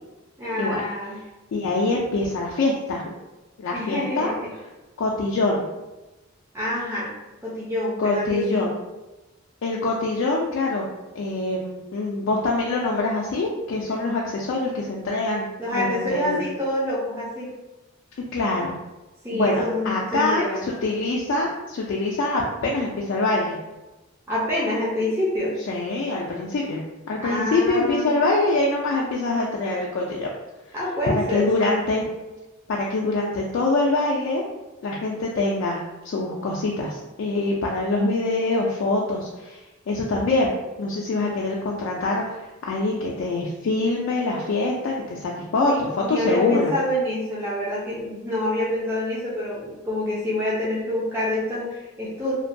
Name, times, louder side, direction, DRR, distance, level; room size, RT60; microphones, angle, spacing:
voice 1, 0.4-1.2 3.7-4.5 6.5-7.1 7.4-8.7 15.6-17.5 19.2-20.7 24.3-25.5 27.2-28.2 30.7-31.8 45.5-52.3, left 1 dB, 10° right, -8 dB, 0.5 m, -27 dB
voice 2, 1.5-3.0 3.6-4.3 5.0-5.7 8.0-8.7 9.6-10.9 11.1-16.4 18.3-18.7 19.3-23.6 25.7-26.8 27.1-30.3 31.1-32.0 32.7-34.4 34.8-39.6 39.9-40.5 40.8-46.7, left 2 dB, 75° left, -3 dB, 0.3 m, -24 dB
2.5 x 2.2 x 2.5 m, 1.1 s
head